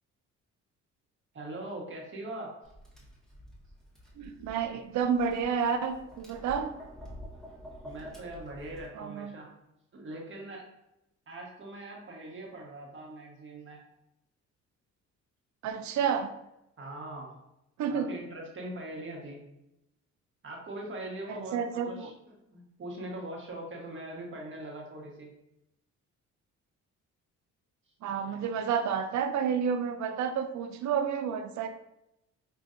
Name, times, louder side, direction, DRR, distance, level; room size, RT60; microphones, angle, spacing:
voice 1, 1.3-2.5 7.8-9.5 9.9-10.7 11.3-13.8 16.8-17.3 17.9-19.4 20.4-22.1 22.5-25.3, right 1 dB, 40° right, -1 dB, 1.2 m, -41 dB
Tap, 2.6-8.9, equal, ahead, 1.0 m, -48 dB
voice 2, 4.2-6.7 8.9-9.4 15.6-16.3 17.8-18.1 21.3-22.1 28.0-31.7, right 7 dB, 70° right, 8 dB, 0.5 m, -30 dB
5.4 x 2.5 x 2.5 m, 0.87 s
cardioid pair, 90°, 30 cm